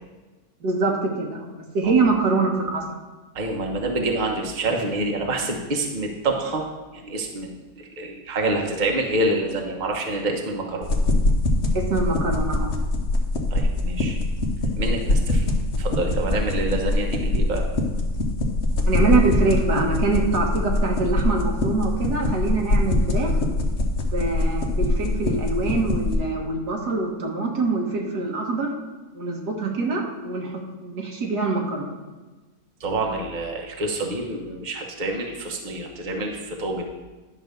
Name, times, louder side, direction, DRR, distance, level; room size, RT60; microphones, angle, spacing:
voice 1, 0.6-2.9 11.7-12.8 18.9-23.3 24.1-28.7 29.1-30.5 30.8-32.0, right 3 dB, 90° right, 0 dB, 2.0 m, -24 dB
voice 2, 3.3-6.7 6.9-7.5 7.8-10.9 13.5-14.2 14.8-15.5 15.8-17.6 32.8-36.9, right 2 dB, 30° right, 1 dB, 1.1 m, -27 dB
sound 1, 10.8-26.2, left 2 dB, 50° left, 1.1 m, -23 dB
10.5 x 3.9 x 6.6 m, 1.2 s
omnidirectional pair, 1.7 m